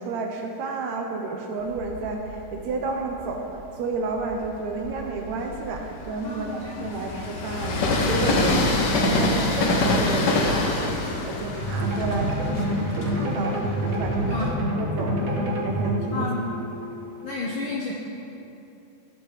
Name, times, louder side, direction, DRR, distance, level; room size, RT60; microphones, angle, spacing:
voice 1, 0.0-14.4 14.8-15.4 15.6-16.3, right 3 dB, 70° right, 2 dB, 2.1 m, -31 dB
Train, 1.7-3.3 3.9-14.5, left 2 dB, 85° left, 0.9 m, -26 dB
voice 2, 6.2-7.1 8.4-8.5 14.2-14.6 16.1-16.5 17.2-17.9, left 3 dB, 65° left, -3 dB, 1.3 m, -31 dB
sound 1, 11.2-16.3, left 1 dB, 40° left, 3.7 m, -38 dB
sound 2, 11.6-17.4, right 1 dB, 35° right, 1.6 m, -27 dB
13.5 x 8.4 x 5.1 m, 2.8 s
omnidirectional pair, 3.5 m